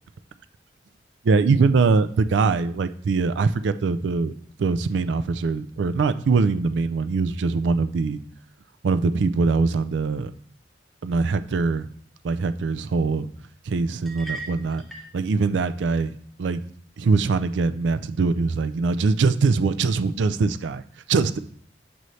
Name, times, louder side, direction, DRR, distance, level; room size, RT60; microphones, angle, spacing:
voice 1, 1.2-4.3 4.6-8.2 8.8-10.3 11.0-11.9 12.2-13.3 13.7-14.8 15.1-16.6 17.0-20.8 21.1-21.4, right 4 dB, 75° right, 12 dB, 0.4 m, -22 dB
sound 1, 14.1-15.2, right 3 dB, ahead, 0.7 m, -37 dB
7.7 x 4.0 x 3.2 m, 0.63 s
head